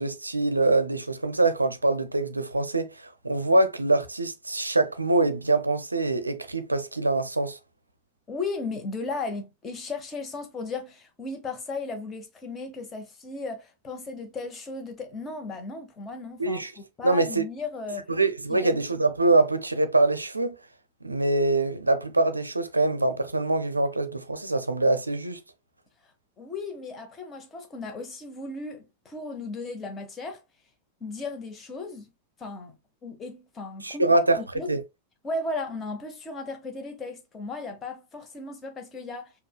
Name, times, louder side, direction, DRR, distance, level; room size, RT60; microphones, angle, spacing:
voice 1, 0.0-7.6 16.4-16.7 17.0-17.4 18.1-20.6 21.0-25.4 33.8-34.4 34.7-34.8, right 2 dB, 80° right, 0.4 m, -24 dB
voice 2, 8.3-18.1 18.5-18.8 26.4-30.4 31.0-32.1 32.4-32.8 33.0-34.8 35.2-39.3, left 3 dB, 25° left, 0.9 m, -36 dB
5.3 x 2.2 x 2.3 m
figure-of-eight pair, 90°, 0 cm